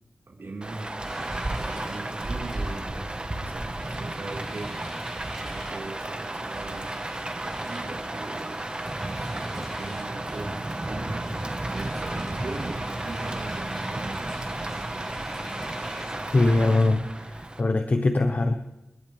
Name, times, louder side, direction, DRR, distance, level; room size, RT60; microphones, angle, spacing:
voice 1, 0.3-0.9 1.5-4.7 5.2-6.9 7.6-8.6 9.1-10.6 10.9-11.3 11.7-14.2, right 2 dB, 60° right, -3 dB, 4.6 m, -40 dB
Rain, 0.6-17.6, right 1 dB, 25° right, 1.4 m, -33 dB
sound 1, 1.0-16.4, right 1 dB, ahead, 7.6 m, -44 dB
voice 2, 16.3-18.5, left 2 dB, 40° left, 6 dB, 1.1 m, -22 dB
29.0 x 12.5 x 3.5 m, 0.94 s
wide cardioid pair, 120°, 4 cm